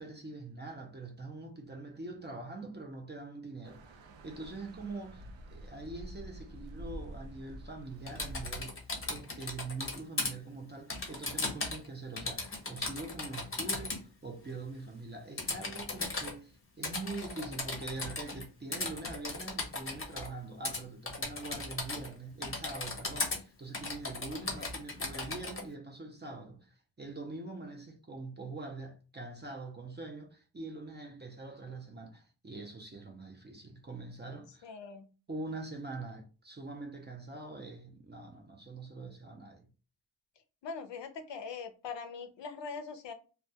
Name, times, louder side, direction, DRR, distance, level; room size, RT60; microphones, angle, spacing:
voice 1, 0.0-34.7 35.3-39.7, right 3 dB, 25° right, 0.4 m, -44 dB
sound 1, 3.6-8.6, right 1 dB, 80° right, 0.6 m, -47 dB
Typing, 8.1-10.3 10.9-11.9 12.2-14.0 15.4-16.3 16.8-18.4 18.7-20.3 20.7-20.8 21.1-22.1 22.4-23.4 23.7-25.6, left 3 dB, 30° left, 0.6 m, -37 dB
voice 2, 34.6-35.1 40.6-43.1, left 5 dB, 70° left, 0.5 m, -42 dB
2.2 x 2.2 x 2.7 m
wide cardioid pair, 135°, 45 cm